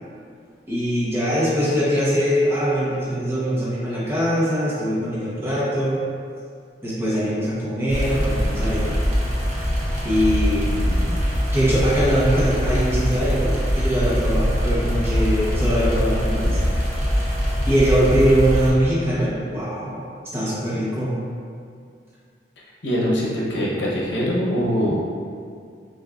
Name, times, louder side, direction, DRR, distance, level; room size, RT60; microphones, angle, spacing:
voice 1, 0.7-6.0 6.8-8.9 10.0-11.2 11.5-16.6 17.7-20.0 20.3-21.1, equal, 15° right, -9 dB, 1.0 m, -22 dB
sound 1, 7.9-18.7, equal, 40° right, 0.8 m, -22 dB
voice 2, 22.8-24.9, equal, 80° left, -4 dB, 0.8 m, -22 dB
6.1 x 2.6 x 2.5 m, 2.3 s
head